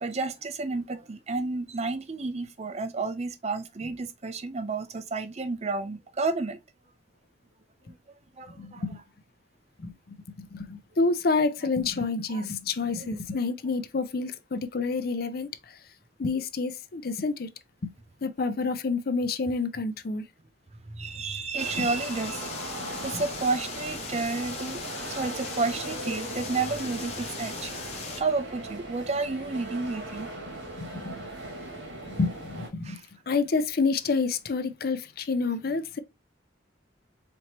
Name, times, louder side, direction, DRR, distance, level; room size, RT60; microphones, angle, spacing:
voice 1, 0.0-6.6 7.9-8.0 8.4-8.8 12.3-12.4 13.0-13.1 20.9-22.5 23.0-30.3 32.8-33.0, right 3 dB, 35° right, 0.5 m, -31 dB
voice 2, 8.6-9.0 9.8-15.8 16.2-17.5 17.8-17.9 18.2-20.3 21.8-21.9 22.8-23.2 30.8-31.3 32.0-33.0 33.3-36.0, left 4 dB, 50° left, 0.5 m, -29 dB
sound 1, 21.6-28.2, left 5 dB, 35° left, 0.8 m, -39 dB
sound 2, 21.6-32.7, right 1 dB, 80° right, 1.5 m, -39 dB
4.3 x 2.9 x 2.9 m
head